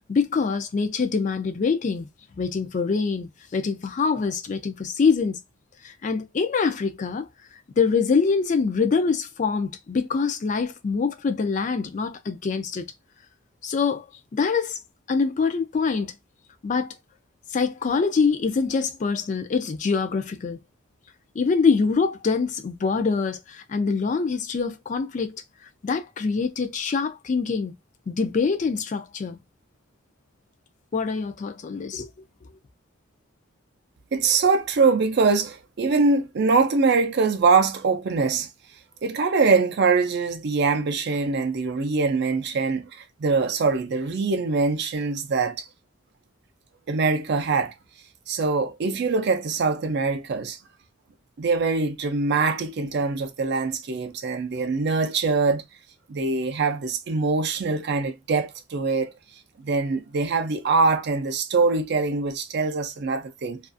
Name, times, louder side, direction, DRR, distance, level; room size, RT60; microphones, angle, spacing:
voice 1, 0.1-2.1 2.4-5.4 5.8-7.3 7.8-12.9 13.6-14.0 14.3-14.8 15.1-16.1 16.6-16.9 17.5-20.6 21.4-25.4 25.8-27.7 28.1-29.4 30.9-32.1, left 5 dB, 35° left, 0.3 m, -24 dB
voice 2, 34.1-38.5 39.0-45.7 46.9-47.7 48.3-50.6 51.4-55.6 56.1-59.1 59.6-63.6, right 4 dB, 50° right, 0.4 m, -23 dB
2.4 x 2.3 x 2.4 m
head